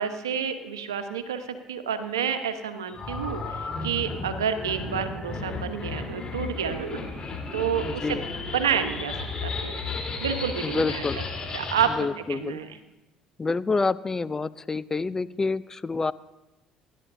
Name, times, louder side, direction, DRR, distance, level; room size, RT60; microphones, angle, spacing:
voice 1, 0.0-7.0 7.5-8.2 8.5-9.8 10.2-11.0 11.5-11.9 12.3-12.7, right 8 dB, 90° right, 8 dB, 1.0 m, -29 dB
sound 1, 2.9-11.9, left 3 dB, 40° left, 3.6 m, -34 dB
voice 2, 7.8-8.3 10.6-11.2 11.8-12.6 13.4-16.1, left 4 dB, 25° left, 17 dB, 0.5 m, -28 dB
27.0 x 12.0 x 2.7 m, 1.0 s
hypercardioid pair, 60°, 2 cm